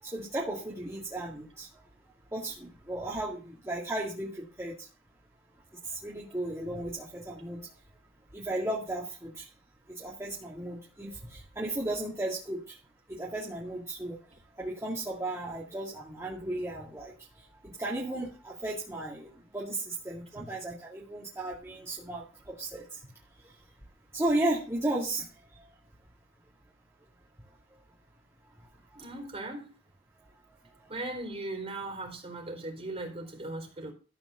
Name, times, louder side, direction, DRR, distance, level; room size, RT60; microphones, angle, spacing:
voice 1, 0.0-1.7 2.3-4.9 5.8-7.7 8.3-9.5 9.9-12.8 13.1-14.2 14.6-23.0 24.1-25.3 25.6-25.7 30.8-30.9, right 1 dB, 15° right, 2.2 m, -35 dB
voice 2, 29.0-29.7 30.9-33.9, right 2 dB, 30° right, 4.0 m, -38 dB
13.5 x 5.0 x 6.8 m
head